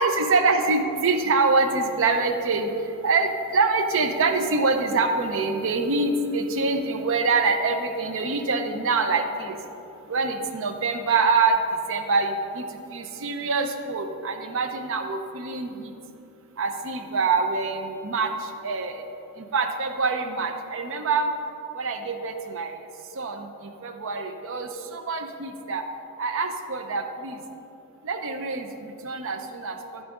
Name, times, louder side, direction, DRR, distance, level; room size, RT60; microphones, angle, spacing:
voice 1, 0.0-2.7 3.0-9.5 10.1-11.5 11.9-12.7 12.9-15.9 16.6-19.0 19.5-21.3 21.7-22.7 23.2-23.5 23.8-25.8 26.2-27.4 28.0-30.0, right 4 dB, 60° right, 6 dB, 0.6 m, -25 dB
14.0 x 5.0 x 3.7 m, 2.8 s
head